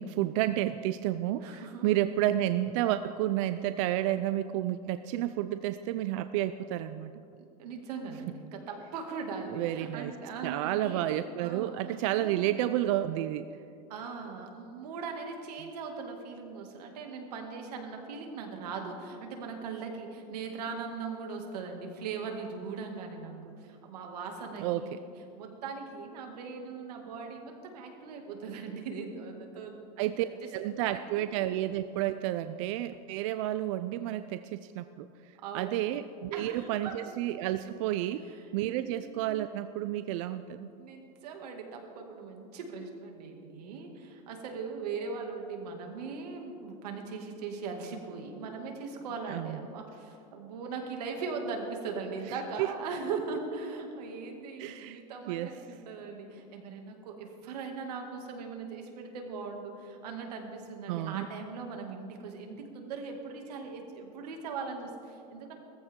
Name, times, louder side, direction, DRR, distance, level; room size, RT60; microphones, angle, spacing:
voice 1, 0.0-7.1 9.5-10.1 10.4-13.5 24.6-25.0 30.0-30.3 30.5-35.1 35.5-38.3 38.5-40.7 49.3-49.6 52.6-52.7 54.6-55.0 55.3-55.5 60.9-61.3, right 13 dB, 55° right, 11 dB, 0.4 m, -31 dB
voice 2, 1.4-1.9 7.4-11.0 11.4-12.5 13.9-29.9 30.2-30.3 30.6-31.2 35.4-35.9 36.3-37.2 38.3-38.5 38.8-39.1 40.8-65.5, right 4 dB, 90° right, 3 dB, 2.3 m, -40 dB
17.5 x 14.5 x 3.7 m, 2.6 s
supercardioid pair, 160°, 20 cm